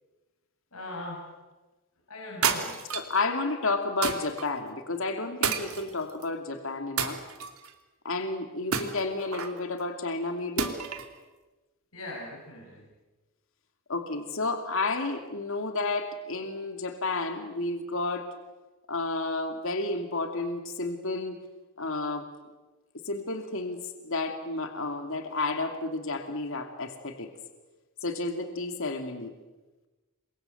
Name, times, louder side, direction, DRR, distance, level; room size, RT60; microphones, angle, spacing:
voice 1, 0.7-1.4 2.1-2.8 11.9-12.9, left 2 dB, 85° left, -2 dB, 6.8 m, -40 dB
sound 1, 2.4-3.2 4.0-4.5 5.4-6.3 7.0-7.7 8.7-9.6 10.6-11.1, right 6 dB, 85° right, 2.9 m, -30 dB
voice 2, 2.9-7.2 8.0-10.8 13.9-18.3 18.9-21.4 21.8-22.3 23.0-27.3 28.0-29.3, left 3 dB, 65° left, 6 dB, 2.7 m, -31 dB
28.5 x 24.0 x 8.0 m, 1.2 s
head